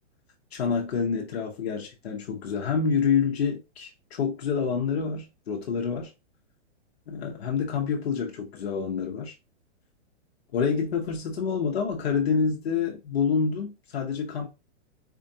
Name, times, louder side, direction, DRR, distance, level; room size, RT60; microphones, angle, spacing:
voice 1, 0.5-6.1 7.1-9.3 10.5-14.5, left 6 dB, 55° left, 0.9 m, -27 dB
4.4 x 2.4 x 2.7 m
hypercardioid pair, 180°, 37 cm